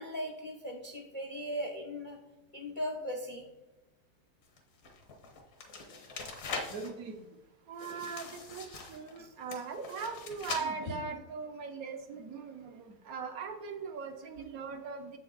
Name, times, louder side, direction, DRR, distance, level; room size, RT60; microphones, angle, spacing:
voice 1, 0.0-2.2 2.5-3.5 9.2-9.3, equal, 50° left, 1 dB, 0.6 m, -38 dB
sound 1, 4.4-6.9 7.8-9.2 9.5-10.6, left 4 dB, 70° left, 1.7 m, -42 dB
voice 2, 6.7-7.3 7.6-15.2, right 5 dB, 65° right, 5 dB, 1.1 m, -40 dB
7.4 x 6.1 x 3.8 m, 1.1 s
omnidirectional pair, 1.8 m